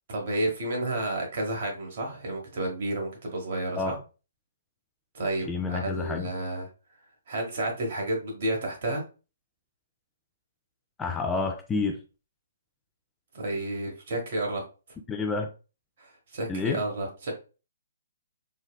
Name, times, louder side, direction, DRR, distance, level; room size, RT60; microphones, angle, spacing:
voice 1, 0.1-4.0 5.1-6.7 7.3-9.0 13.3-14.6 16.0-17.3, right 1 dB, 50° right, 1 dB, 1.1 m, -31 dB
voice 2, 5.5-6.3 11.0-12.0 15.1-15.5 16.5-16.8, left 4 dB, 10° left, 4 dB, 0.3 m, -29 dB
3.9 x 2.1 x 2.2 m, 0.32 s
figure-of-eight pair, 130°, 0 cm